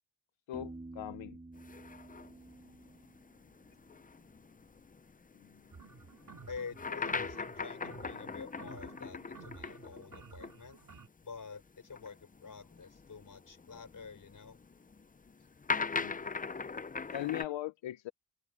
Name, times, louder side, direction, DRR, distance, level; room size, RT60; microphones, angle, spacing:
voice 1, 0.5-1.4 5.4-5.6 15.9-16.2 17.1-18.1, left 14 dB, 90° left, 0.7 m, -39 dB
Piano, 0.5-4.2, right 2 dB, 15° right, 2.8 m, -51 dB
sound 1, 1.6-10.6 10.8-10.9 11.8-17.4, left 4 dB, 20° left, 0.6 m, -41 dB
sound 2, 5.7-11.1, right 5 dB, 45° right, 2.4 m, -53 dB
voice 2, 6.5-10.8 11.2-14.6, left 5 dB, 45° left, 5.1 m, -48 dB
cardioid pair, 90°, 44 cm